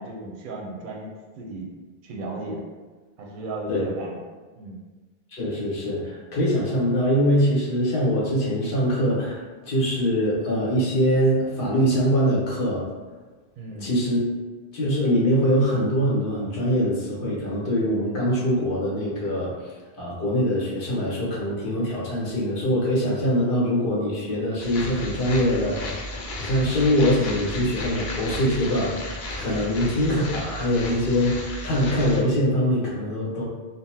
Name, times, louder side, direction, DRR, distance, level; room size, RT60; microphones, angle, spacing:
voice 1, 0.0-1.7 2.0-2.6 3.2-4.2 4.6-4.8 13.6-13.9 29.6-29.8, right 2 dB, 60° right, -1 dB, 0.7 m, -35 dB
voice 2, 5.3-12.9 13.8-14.2 14.7-19.7 20.0-26.0 26.4-33.4, equal, 60° left, -5 dB, 1.1 m, -23 dB
sound 1, 24.6-32.2, left 1 dB, 80° left, 0.8 m, -34 dB
3.7 x 2.0 x 2.7 m, 1.3 s
omnidirectional pair, 1.0 m